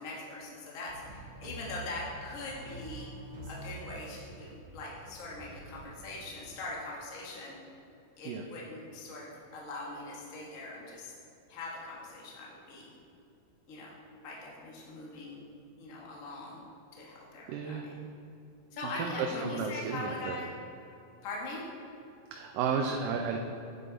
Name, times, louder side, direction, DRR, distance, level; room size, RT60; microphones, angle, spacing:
voice 1, 0.0-3.1 3.5-7.6 8.2-11.1 11.5-12.9 13.7-13.9 14.2-15.4 15.8-16.6 16.9-18.0 18.7-20.5 21.2-21.6, left 2 dB, 55° left, -4 dB, 0.9 m, -41 dB
sound 1, 0.9-6.7, right 2 dB, 45° right, 1.5 m, -47 dB
voice 2, 17.5-17.8 18.8-20.4 22.3-23.4, right 5 dB, 80° right, 2 dB, 2.2 m, -33 dB
8.5 x 7.4 x 3.9 m, 2.7 s
omnidirectional pair, 3.9 m